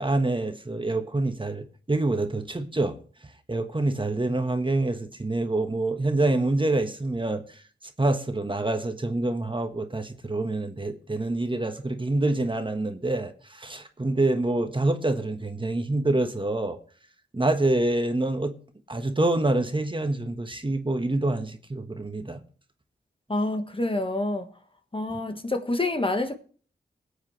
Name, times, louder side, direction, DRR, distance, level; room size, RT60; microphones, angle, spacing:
voice 1, 0.0-3.0 3.5-7.6 8.0-16.8 17.3-18.5 18.9-22.4 25.1-25.2, right 2 dB, 25° right, 1.3 m, -26 dB
voice 2, 23.3-24.5 24.9-26.4, left 2 dB, 30° left, 1.4 m, -27 dB
19.5 x 8.4 x 3.2 m
cardioid pair, 60°, 19 cm